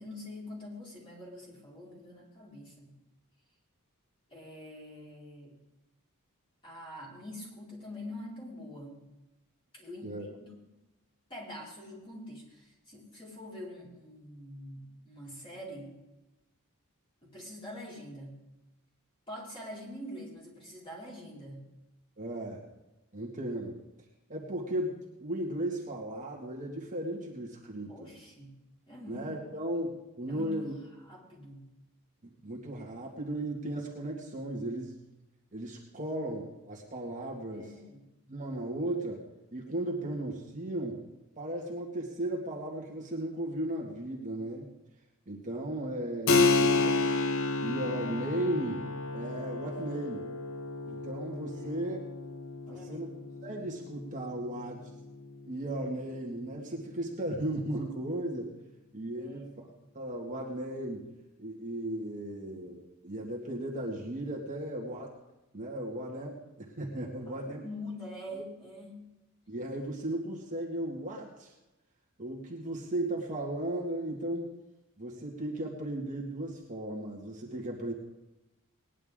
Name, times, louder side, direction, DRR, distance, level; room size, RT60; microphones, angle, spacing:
voice 1, 0.0-2.9 4.3-5.5 6.6-9.0 9.7-10.1 10.6-10.7 11.3-15.9 17.2-18.4 19.3-21.6 27.9-28.6 28.9-29.5 30.3-30.7 31.0-31.7 37.5-38.0 51.5-51.8 52.7-53.1 59.1-59.5 67.3-69.0, left 1 dB, 25° left, -5 dB, 4.8 m, -45 dB
voice 2, 22.2-22.6 23.1-23.8 24.3-28.1 29.1-30.7 32.4-35.0 35.5-37.7 38.3-39.2 39.5-41.0 41.4-44.7 45.3-47.2 47.6-48.9 49.1-50.3 50.9-52.0 52.7-53.1 53.4-54.8 55.5-58.5 58.9-59.5 59.9-61.0 61.4-65.2 65.5-67.6 69.5-71.5 72.2-74.5 75.0-77.9, right 1 dB, 35° right, -3 dB, 1.9 m, -36 dB
Keyboard (musical), 46.3-56.5, left 3 dB, 65° left, 0.8 m, -31 dB
19.5 x 10.5 x 3.7 m, 1.0 s
head